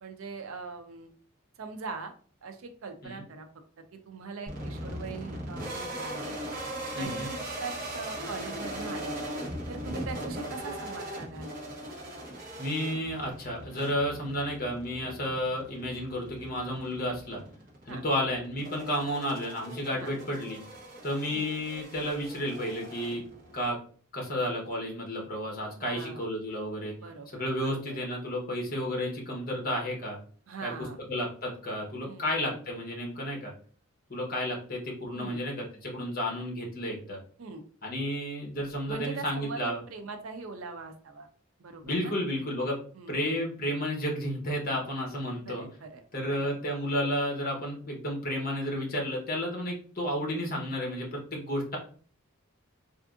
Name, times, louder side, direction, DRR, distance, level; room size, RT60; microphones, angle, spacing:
voice 1, 0.0-1.1 1.6-2.1 2.4-3.5 3.9-6.4 7.0-9.2 9.7-11.5 17.9-18.0 20.0-20.1 21.3-21.4 25.8-26.2 27.0-28.0 30.5-31.0 32.1-32.5 35.1-35.4 37.4-37.6 38.9-41.3 41.6-42.1 42.9-43.2 45.5-46.0 46.3-46.5, right 4 dB, 70° right, 7 dB, 0.5 m, -41 dB
sound 1, 4.5-23.7, right 1 dB, 40° right, 0.9 m, -40 dB
voice 2, 6.9-7.3 12.6-17.4 17.9-20.6 21.0-23.2 23.5-23.8 24.1-26.9 27.3-30.2 30.6-30.7 31.1-33.5 34.1-37.2 37.8-39.8 41.8-42.8 43.1-45.7 46.1-51.8, equal, 40° left, 0 dB, 1.0 m, -32 dB
3.4 x 2.5 x 2.4 m, 0.44 s
head